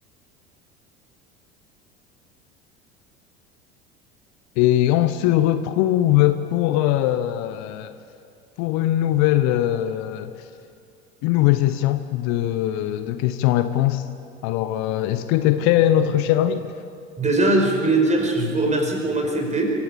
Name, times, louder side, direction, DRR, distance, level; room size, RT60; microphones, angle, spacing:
voice 1, 4.6-7.9 8.6-10.5 11.2-14.1 14.4-16.7, left 13 dB, 55° left, 11 dB, 1.0 m, -21 dB
voice 2, 17.2-19.7, right 2 dB, 20° right, 2 dB, 5.4 m, -21 dB
25.5 x 16.0 x 7.5 m, 2.5 s
figure-of-eight pair, 70°, 34 cm